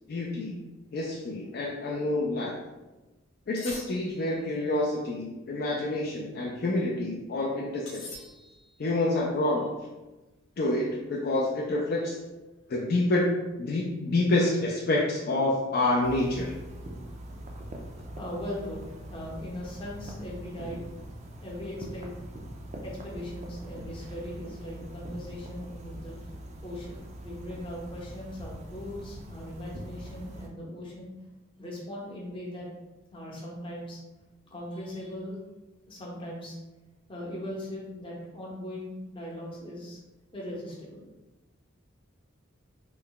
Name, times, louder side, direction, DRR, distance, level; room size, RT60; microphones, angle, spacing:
voice 1, 0.1-0.6 0.9-2.6 3.5-8.0 8.8-9.7 10.6-12.2 12.7-13.3 13.6-16.5, left 2 dB, 50° left, -4 dB, 0.4 m, -27 dB
sound 1, 3.6-4.5 7.9-8.8, left 2 dB, 80° left, 0.7 m, -44 dB
sound 2, 16.0-30.5, right 1 dB, 35° right, 0.3 m, -42 dB
voice 2, 18.1-20.8 21.4-22.2 22.8-26.2 26.6-31.1 31.6-32.7 33.1-34.0 34.5-35.4 35.9-36.6 37.1-40.0 40.3-41.1, left 1 dB, 25° left, -4 dB, 0.8 m, -39 dB
3.2 x 2.1 x 3.8 m, 1.1 s
head